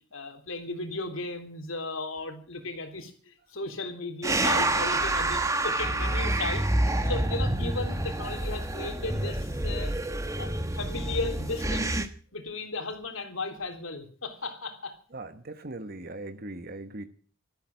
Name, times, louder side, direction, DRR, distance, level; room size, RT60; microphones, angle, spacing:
voice 1, 0.1-9.9 10.4-12.1 12.3-15.0, left 3 dB, 80° left, 6 dB, 3.5 m, -36 dB
sound 1, 4.2-12.1, right 1 dB, 15° right, 1.3 m, -28 dB
voice 2, 15.1-17.0, right 2 dB, 50° right, 8 dB, 1.1 m, -39 dB
13.5 x 13.0 x 7.6 m, 0.42 s
head